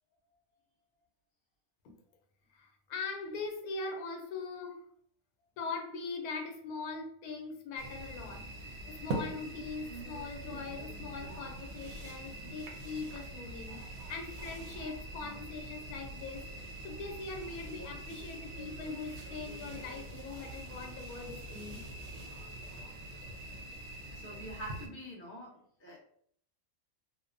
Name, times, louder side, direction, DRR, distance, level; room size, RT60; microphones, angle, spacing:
voice 1, 2.5-4.8 5.6-21.9, left 4 dB, 85° left, 3 dB, 1.1 m, -41 dB
sound 1, 7.8-24.9, right 1 dB, 65° right, 0.7 m, -44 dB
voice 2, 24.1-26.0, right 1 dB, 20° left, -4 dB, 0.4 m, -45 dB
2.9 x 2.0 x 2.5 m, 0.63 s
omnidirectional pair, 1.5 m